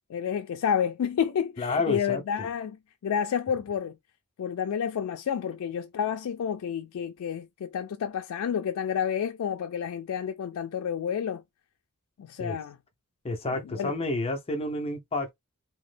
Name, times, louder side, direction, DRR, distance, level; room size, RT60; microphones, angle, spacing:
voice 1, 0.1-4.0 4.4-11.4 12.2-12.8 13.5-13.9, left 8 dB, 80° left, 0.3 m, -30 dB
voice 2, 1.6-2.5 12.4-12.6 13.2-15.3, left 2 dB, 25° left, 0.5 m, -30 dB
2.9 x 2.1 x 3.2 m
head